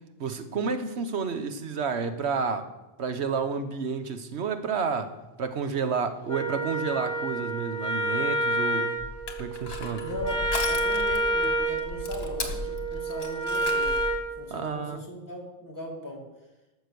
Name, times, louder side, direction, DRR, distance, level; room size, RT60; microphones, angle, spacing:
voice 1, 0.2-2.7 3.0-9.0 9.4-10.1 14.5-15.0, right 5 dB, 85° right, 9 dB, 1.2 m, -30 dB
Wind instrument woodwind instrument, 6.3-14.2, right 1 dB, 50° left, 2.3 m, -29 dB
Crushing, 9.0-14.2, left 3 dB, 65° left, 1.6 m, -37 dB
voice 2, 10.0-14.1 14.4-16.3, equal, 15° left, -2 dB, 2.3 m, -38 dB
12.0 x 6.7 x 6.8 m, 1.0 s
omnidirectional pair, 1.1 m